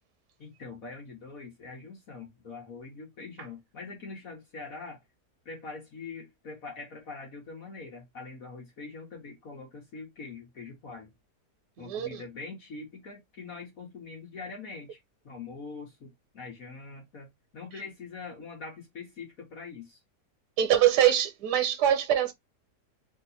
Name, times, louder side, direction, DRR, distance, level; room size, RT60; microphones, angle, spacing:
voice 1, 0.4-5.0 5.4-11.1 11.8-15.0 15.2-17.3 17.5-20.0, left 4 dB, 60° left, 1.5 m, -43 dB
voice 2, 11.8-12.2 20.6-22.3, right 11 dB, 80° right, 1.4 m, -24 dB
3.3 x 2.9 x 4.0 m
omnidirectional pair, 1.8 m